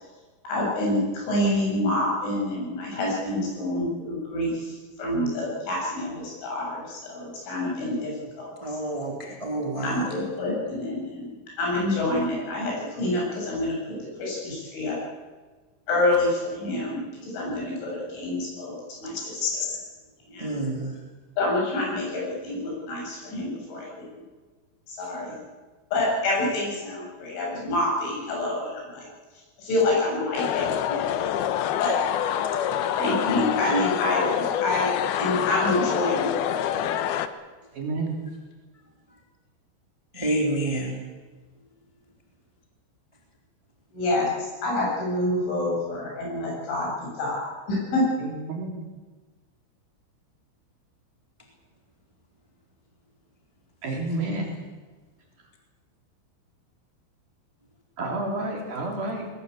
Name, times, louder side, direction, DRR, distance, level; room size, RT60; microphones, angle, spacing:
voice 1, 0.4-8.1 8.4-8.6 8.9-9.0 9.8-11.3 11.6-15.0 15.9-19.7 20.3-20.7 21.4-24.2 24.9-25.4 25.9-29.1 29.6-31.2 31.8-32.0 33.0-34.9 35.2-36.6 43.9-48.1, left 1 dB, 65° left, -3 dB, 10.5 m, -27 dB
voice 2, 8.6-10.1 19.4-19.7 20.4-20.9 40.1-40.9, equal, 10° right, 0 dB, 2.5 m, -28 dB
sound 1, 30.4-37.3, left 10 dB, 90° left, 2.1 m, -26 dB
voice 3, 37.7-38.2 48.2-48.8 53.8-54.6 58.0-59.3, right 2 dB, 50° right, 0 dB, 4.6 m, -30 dB
21.5 x 20.0 x 8.5 m, 1.3 s
omnidirectional pair, 6.0 m